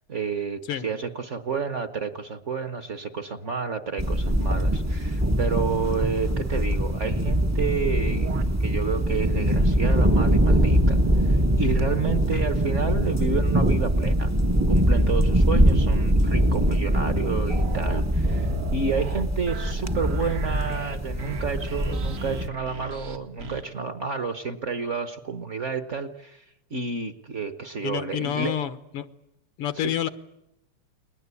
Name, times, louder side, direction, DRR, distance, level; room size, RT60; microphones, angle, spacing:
voice 1, 0.1-14.3 14.7-26.4 26.7-28.6 29.7-29.9, right 5 dB, 45° right, 10 dB, 1.1 m, -30 dB
sound 1, 4.0-22.5, equal, 20° right, 0.4 m, -23 dB
sound 2, 7.9-9.7 10.1-23.6, right 3 dB, 80° right, 3.0 m, -36 dB
voice 2, 27.8-29.1 29.6-30.1, left 10 dB, 90° left, 12 dB, 2.2 m, -28 dB
30.0 x 21.0 x 8.4 m, 0.86 s
omnidirectional pair, 2.4 m